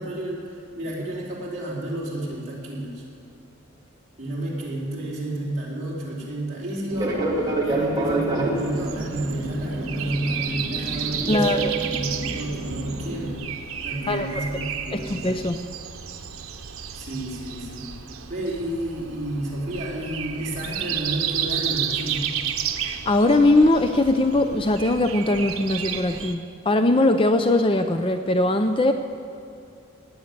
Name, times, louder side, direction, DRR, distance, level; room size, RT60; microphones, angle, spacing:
voice 1, 0.0-3.0 4.2-13.4 13.8-15.2 16.9-17.9 18.3-22.4, right 1 dB, 35° right, -6 dB, 4.4 m, -31 dB
Fixed-wing aircraft airplane, 6.9-13.3, right 2 dB, 20° right, 2.2 m, -28 dB
Breathing, 8.6-26.3, right 8 dB, 85° right, 1.0 m, -32 dB
voice 2, 11.3-11.7 14.1-14.3 14.9-15.6 23.1-28.9, left 2 dB, 25° left, 7 dB, 0.5 m, -20 dB
18.5 x 8.0 x 9.6 m, 2.7 s
head